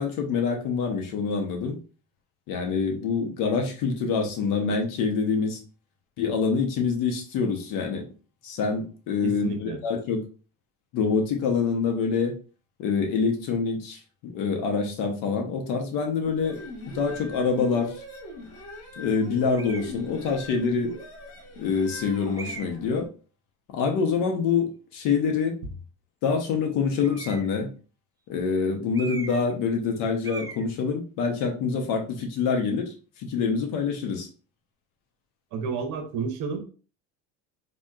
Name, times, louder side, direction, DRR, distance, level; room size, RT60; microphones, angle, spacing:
voice 1, 0.0-1.8 2.5-5.6 6.2-8.0 8.4-10.2 10.9-12.3 12.8-16.6 16.8-17.9 19.0-20.9 21.6-23.1 23.7-25.5 26.2-27.7 28.3-34.3, left 5 dB, 70° left, 3 dB, 1.0 m, -26 dB
voice 2, 9.2-9.8 35.5-36.6, right 5 dB, 65° right, 5 dB, 1.0 m, -31 dB
sound 1, 16.3-23.0, left 1 dB, 85° left, 1.5 m, -41 dB
sound 2, 19.6-20.0 20.8-20.9 22.3-22.9 27.0-27.6 28.9-29.5 29.8-30.0 30.2-30.6, right 4 dB, 10° right, 0.3 m, -39 dB
4.0 x 2.9 x 2.4 m, 0.37 s
cardioid pair, 140°, 34 cm